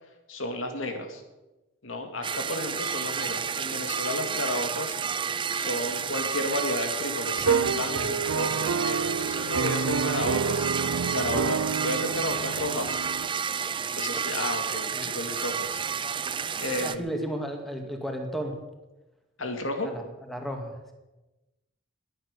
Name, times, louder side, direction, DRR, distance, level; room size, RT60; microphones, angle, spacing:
voice 1, 0.3-1.2 1.8-5.0 5.5-10.7 11.1-13.0 13.9-15.8 16.6-17.1 19.4-19.9, left 1 dB, 85° left, 6 dB, 2.4 m, -32 dB
sound 1, 2.2-17.0, right 6 dB, 25° right, 0.6 m, -31 dB
sound 2, 7.4-13.3, right 5 dB, 75° right, 0.5 m, -29 dB
voice 2, 16.5-18.6 19.8-20.9, right 1 dB, ahead, 3 dB, 2.3 m, -34 dB
21.5 x 9.2 x 6.8 m, 1.1 s
head